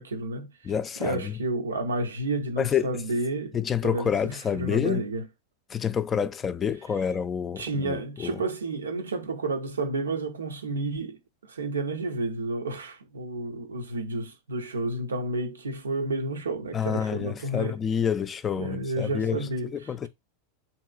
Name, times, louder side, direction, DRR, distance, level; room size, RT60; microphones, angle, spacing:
voice 1, 0.0-0.7 1.0-3.6 3.8-5.2 7.6-17.8 18.6-20.1, right 2 dB, 90° right, 0.5 m, -31 dB
voice 2, 0.6-1.4 2.6-2.9 3.5-5.0 5.7-8.4 16.7-20.1, left 7 dB, 25° left, 0.3 m, -28 dB
3.0 x 2.6 x 2.3 m
hypercardioid pair, 100°, 0 cm